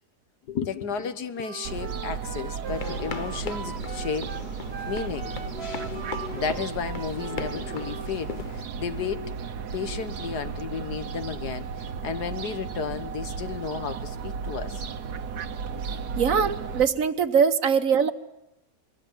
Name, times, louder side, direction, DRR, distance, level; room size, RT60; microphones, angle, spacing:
voice 1, 0.5-4.4 4.9-5.3 6.3-9.3 9.7-14.9 15.7-15.8 16.3-16.5, left 6 dB, 80° left, 10 dB, 1.9 m, -33 dB
Wind instrument woodwind instrument, 1.3-8.1, right 7 dB, 45° right, 1.2 m, -40 dB
Fowl, 1.6-16.8, right 5 dB, 80° right, 1.7 m, -35 dB
sound 1, 2.7-8.6, left 4 dB, 35° left, 1.0 m, -38 dB
voice 2, 16.2-18.1, right 6 dB, 60° right, 11 dB, 1.4 m, -22 dB
26.5 x 21.5 x 7.3 m, 0.90 s
omnidirectional pair, 1.7 m